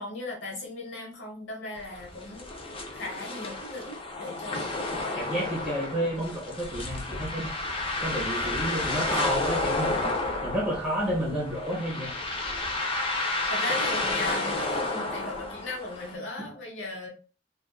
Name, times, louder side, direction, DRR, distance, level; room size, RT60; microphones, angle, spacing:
voice 1, 0.0-2.5 2.9-4.7 12.9-17.1, left 2 dB, 80° left, -1 dB, 1.0 m, -37 dB
sound 1, 1.8-16.1, left 2 dB, 30° left, 0.5 m, -31 dB
voice 2, 5.1-7.6 8.0-10.1 10.4-12.1, equal, 5° right, -5 dB, 0.7 m, -30 dB
2.5 x 2.2 x 2.3 m, 0.35 s
head